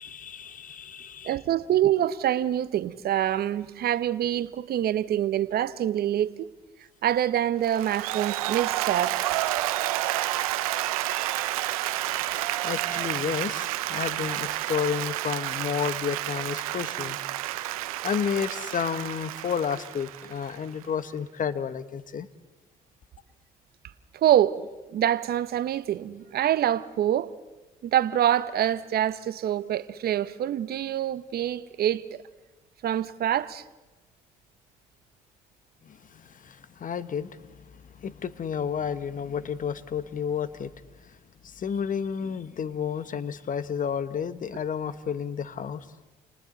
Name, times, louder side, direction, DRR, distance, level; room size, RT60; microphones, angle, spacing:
voice 1, 0.0-1.4 12.3-12.4 12.6-17.2 18.0-22.3 35.8-37.6 38.0-40.7 41.0-41.1 41.4-45.9, left 7 dB, 50° left, 1.4 m, -31 dB
voice 2, 1.2-6.5 7.0-9.4 24.1-24.6 24.9-27.3 27.8-32.2 32.8-33.6, right 11 dB, 60° right, 0.9 m, -25 dB
Applause, 7.6-20.8, right 15 dB, 90° right, 0.9 m, -30 dB
30.0 x 28.5 x 4.0 m
hypercardioid pair, 55°, 18 cm